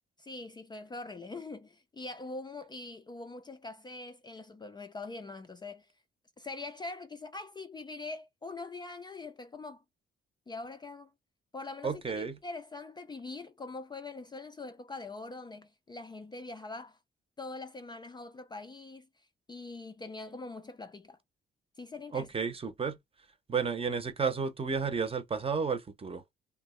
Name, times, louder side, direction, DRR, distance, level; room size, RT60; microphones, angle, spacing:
voice 1, 0.2-5.9 6.4-9.8 10.5-11.1 11.5-17.0 17.4-19.1 19.5-21.2 21.8-22.3, left 3 dB, 20° left, 0.4 m, -43 dB
voice 2, 11.8-12.4 22.1-23.0 23.5-26.2, right 5 dB, 30° right, 0.7 m, -32 dB
2.5 x 2.1 x 3.6 m
cardioid pair, 90°, 20 cm